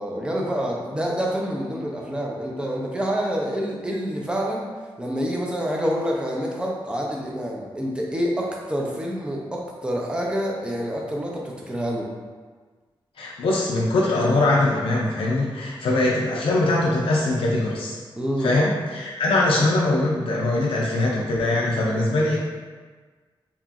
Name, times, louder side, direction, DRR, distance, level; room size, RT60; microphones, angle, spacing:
voice 1, 0.0-12.1 18.2-18.5, equal, 10° right, -2 dB, 0.5 m, -27 dB
voice 2, 13.2-18.0 18.4-22.4, left 2 dB, 90° left, -4 dB, 0.4 m, -22 dB
2.9 x 2.5 x 2.3 m, 1.4 s
wide cardioid pair, 95°, 9 cm